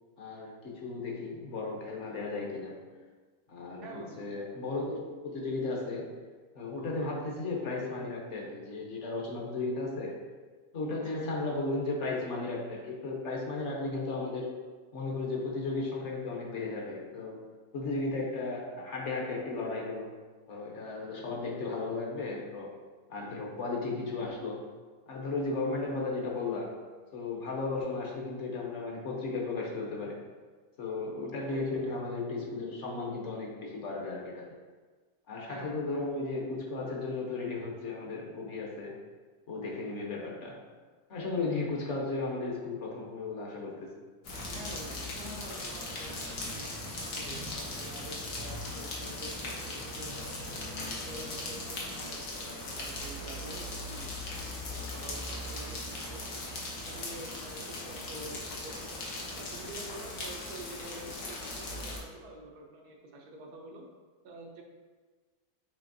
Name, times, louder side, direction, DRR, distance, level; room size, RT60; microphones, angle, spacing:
voice 1, 0.2-2.8 3.5-6.1 6.5-10.2 10.7-14.5 14.9-17.4 17.7-20.1 20.5-22.7 23.1-24.6 25.1-26.7 27.1-30.2 30.8-34.4 35.3-38.9 39.5-40.6 41.1-43.9, left 3 dB, 55° left, -2 dB, 0.9 m, -35 dB
voice 2, 3.8-4.3 4.7-4.9 7.0-7.1 10.9-11.0 31.4-32.0 35.5-35.8 44.5-50.3 50.7-54.1 54.7-56.2 56.9-58.8 59.3-63.8 64.2-64.6, right 1 dB, 90° right, 1 dB, 1.3 m, -47 dB
sound 1, 44.2-62.0, left 2 dB, 85° left, 1.4 m, -39 dB
6.7 x 2.9 x 2.6 m, 1.4 s
omnidirectional pair, 1.6 m